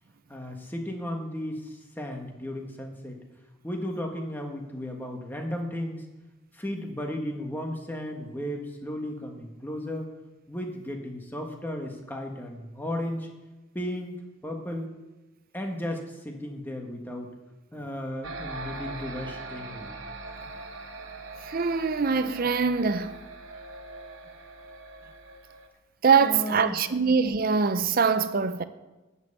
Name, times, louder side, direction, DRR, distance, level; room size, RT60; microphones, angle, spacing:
voice 1, 0.3-3.2 3.6-6.0 6.5-10.1 10.5-13.3 13.7-15.0 15.5-17.3 17.7-19.9 26.2-26.8, left 1 dB, 10° left, 1.4 m, -35 dB
sound 1, 18.2-25.7, right 2 dB, 80° right, 1.3 m, -41 dB
voice 2, 21.4-23.1 26.0-28.6, right 5 dB, 45° right, 0.5 m, -23 dB
12.0 x 5.6 x 8.1 m
head